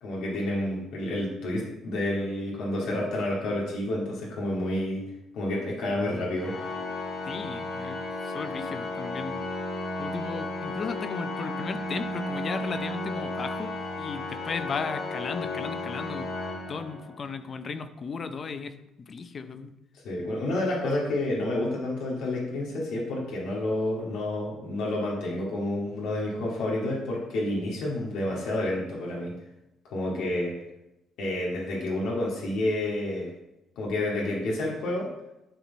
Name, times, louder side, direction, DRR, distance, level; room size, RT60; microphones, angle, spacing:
voice 1, 0.0-5.0 5.3-6.7 20.0-29.3 29.9-30.5 31.2-33.3 33.8-35.1, left 1 dB, 80° left, -4 dB, 2.2 m, -29 dB
Organ, 6.4-17.3, left 2 dB, 55° left, 1.6 m, -34 dB
voice 2, 7.2-9.4 10.0-16.3 16.7-19.7, left 5 dB, 35° left, 10 dB, 0.6 m, -36 dB
11.5 x 4.3 x 4.1 m, 0.91 s
cardioid pair, 135°, 0 cm